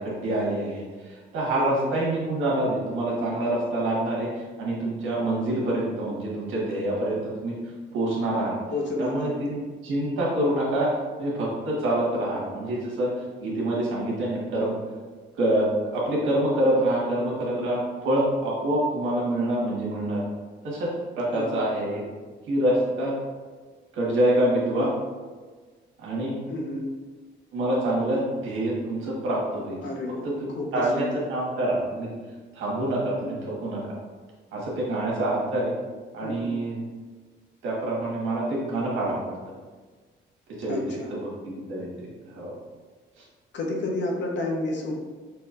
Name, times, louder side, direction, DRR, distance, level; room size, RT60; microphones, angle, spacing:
voice 1, 0.0-7.6 7.9-8.5 9.0-9.6 9.8-10.9 11.2-13.1 13.4-14.8 15.4-15.7 15.9-20.2 20.6-20.9 21.2-22.0 22.5-23.1 23.9-24.9 26.0-26.4 27.5-29.8 30.4-32.1 32.5-33.8 34.5-35.7 36.1-36.8 37.6-39.4 40.6-42.5, right 1 dB, 85° right, -4 dB, 1.4 m, -26 dB
voice 2, 1.5-1.9 8.7-9.3 21.3-21.6 26.5-26.9 29.8-30.2 30.5-31.1 33.2-33.4 36.2-36.5 40.7-41.1 43.5-44.9, left 2 dB, 65° left, 0 dB, 1.0 m, -30 dB
5.9 x 2.9 x 2.5 m, 1.5 s
cardioid pair, 90°, 20 cm